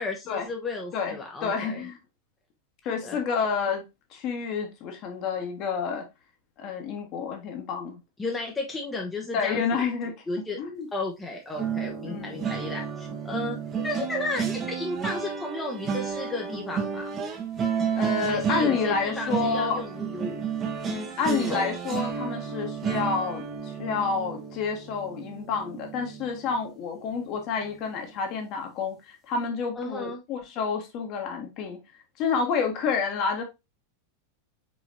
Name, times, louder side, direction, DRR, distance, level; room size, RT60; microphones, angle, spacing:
voice 1, 0.0-1.9 3.0-3.2 8.2-9.9 10.3-10.6 10.9-17.1 18.3-20.4 21.2-21.7 29.8-30.2, left 3 dB, 15° left, 0.8 m, -33 dB
voice 2, 0.9-2.0 2.8-3.8 4.1-6.0 6.6-8.0 9.3-10.9 12.0-12.5 18.0-19.8 20.9-31.8 32.2-33.4, left 5 dB, 40° left, 1.3 m, -29 dB
sound 1, 11.6-26.7 27.1-27.4 27.7-27.9, right 7 dB, 25° right, 1.0 m, -32 dB
4.8 x 4.1 x 2.7 m
figure-of-eight pair, 90°, 0 cm